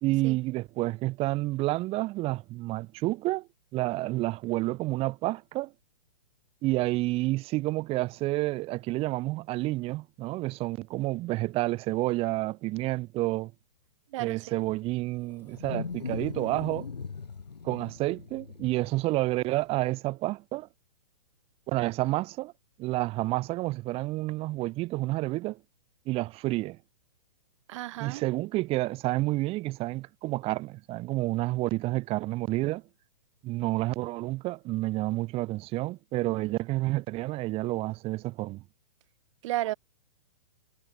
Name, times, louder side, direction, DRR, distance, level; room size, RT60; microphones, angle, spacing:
voice 1, 0.0-5.7 6.6-13.5 14.2-16.9 17.6-20.7 21.7-22.5 22.8-25.6 26.1-26.8 28.0-32.8 33.4-38.6, right 19 dB, 30° right, 1.7 m, -29 dB
voice 2, 14.1-14.4 27.7-28.2 39.4-39.7, right 16 dB, 50° right, 4.9 m, -32 dB
Wild animals, 14.6-19.6, left 5 dB, 90° left, 2.2 m, -39 dB
hypercardioid pair, 125°, 20 cm